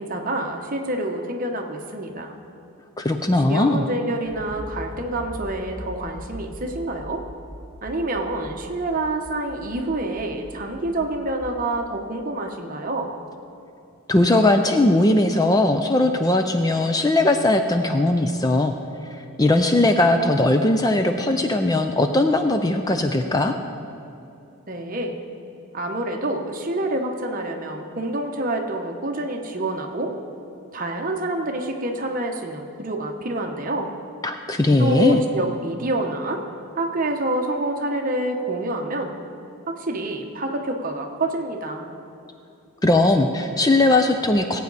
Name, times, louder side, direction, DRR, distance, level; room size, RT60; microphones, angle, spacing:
voice 1, 0.0-2.3 3.5-7.2 7.8-13.1 24.7-25.2 25.7-30.1 30.7-33.9 34.8-36.4 36.8-39.1 39.7-41.9, right 1 dB, 40° right, 3 dB, 1.0 m, -27 dB
voice 2, 3.0-3.8 14.1-18.7 19.2-23.6 34.2-35.2 42.8-44.6, left 2 dB, 15° left, 6 dB, 0.4 m, -19 dB
Accelerating revving vroom, 4.2-11.5, equal, 10° right, 1.4 m, -40 dB
19.0 x 8.5 x 4.1 m, 2.7 s
head